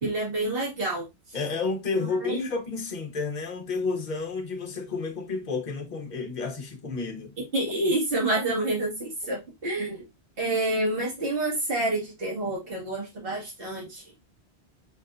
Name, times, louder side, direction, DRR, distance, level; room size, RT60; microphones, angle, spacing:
voice 1, 0.0-1.4 2.2-2.5 7.4-10.1 10.4-14.1, right 2 dB, 60° right, 2.2 m, -28 dB
voice 2, 1.3-7.3, left 4 dB, 45° left, 1.0 m, -31 dB
5.5 x 3.6 x 2.5 m
omnidirectional pair, 1.1 m